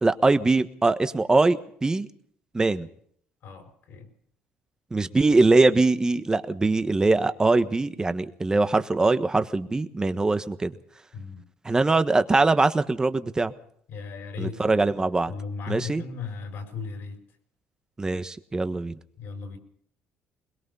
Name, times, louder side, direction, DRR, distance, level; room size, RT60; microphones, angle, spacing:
voice 1, 0.0-2.1 2.5-2.9 4.9-10.7 11.6-13.5 14.4-15.3 15.7-16.0 18.0-18.9, right 3 dB, 20° right, 11 dB, 1.3 m, -22 dB
voice 2, 3.4-4.1 11.1-11.4 13.9-14.8 15.3-17.2 19.2-19.6, left 5 dB, 70° left, 5 dB, 5.5 m, -36 dB
22.0 x 21.5 x 5.6 m, 0.66 s
cardioid pair, 95°, 4 cm